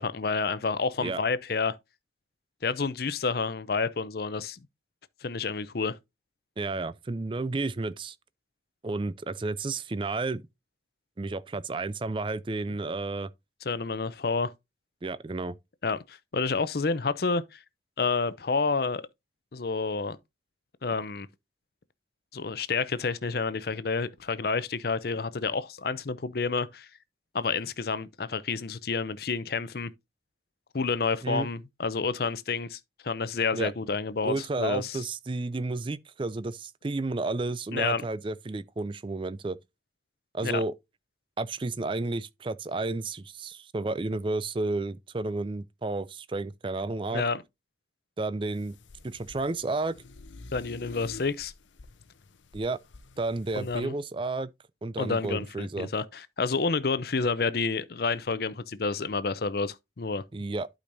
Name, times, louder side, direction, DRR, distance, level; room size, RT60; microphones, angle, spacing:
voice 1, 0.0-1.8 2.6-4.7 5.2-6.0 13.7-14.5 15.8-17.6 18.0-19.0 19.5-20.2 20.8-21.3 22.3-26.9 27.3-29.9 30.7-35.0 37.7-38.0 40.4-40.6 47.1-47.4 50.5-51.5 53.6-53.9 55.0-60.2, left 4 dB, 55° left, 0.6 m, -29 dB
voice 2, 6.6-8.2 8.8-10.4 11.2-13.3 15.0-15.5 31.2-31.5 33.5-33.7 34.2-39.6 40.3-40.7 41.4-47.2 48.2-48.8 49.0-50.0 52.5-52.8 53.2-54.5 54.8-55.9 60.3-60.7, right 3 dB, 25° right, 0.4 m, -31 dB
sound 1, 48.5-53.8, left 3 dB, 85° left, 0.7 m, -49 dB
11.5 x 5.1 x 2.6 m
head